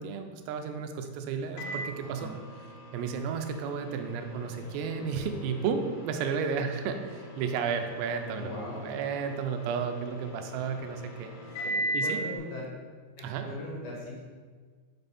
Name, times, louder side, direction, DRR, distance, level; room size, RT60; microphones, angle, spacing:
voice 1, 0.0-2.3 2.9-8.5 8.8-11.3 11.9-12.2 13.2-13.5, right 6 dB, 80° right, 6 dB, 2.8 m, -33 dB
Microwave oven, 1.6-12.3, right 1 dB, 75° left, 1.3 m, -39 dB
voice 2, 8.3-8.9 11.6-12.7 13.2-14.2, left 1 dB, 60° left, -5 dB, 2.6 m, -39 dB
6.9 x 6.3 x 4.2 m, 1.5 s
omnidirectional pair, 5.0 m